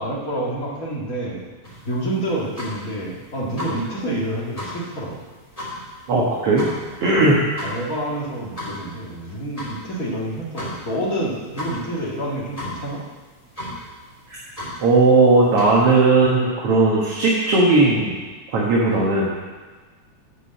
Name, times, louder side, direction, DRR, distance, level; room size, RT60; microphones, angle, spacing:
voice 1, 0.0-1.4 1.9-5.2 7.1-7.2 7.6-13.0, right 1 dB, 35° left, -4 dB, 2.0 m, -28 dB
sound 1, 1.6-16.0, left 1 dB, 15° left, 2.4 m, -36 dB
voice 2, 6.1-6.7 7.0-7.4 14.3-14.4 14.8-18.2 18.5-19.3, right 3 dB, 55° right, -4 dB, 2.2 m, -17 dB
9.7 x 5.3 x 7.6 m, 1.4 s
omnidirectional pair, 3.3 m